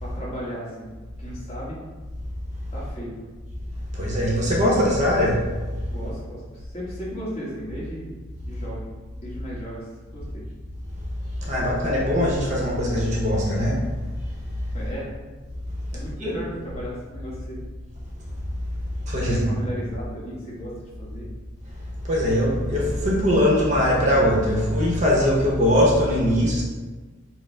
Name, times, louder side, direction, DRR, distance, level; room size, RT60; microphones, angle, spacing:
voice 1, 0.0-0.9 1.2-1.8 2.7-3.3 5.9-8.1 8.4-8.9 9.2-9.9 10.1-10.4 14.7-15.1 15.9-17.6 19.2-21.3, equal, 30° left, -7 dB, 1.2 m, -35 dB
voice 2, 4.0-5.4 11.5-13.8 16.2-16.3 19.1-19.4 22.1-26.6, left 1 dB, 35° right, -3 dB, 0.7 m, -21 dB
4.3 x 2.0 x 4.3 m, 1.3 s
head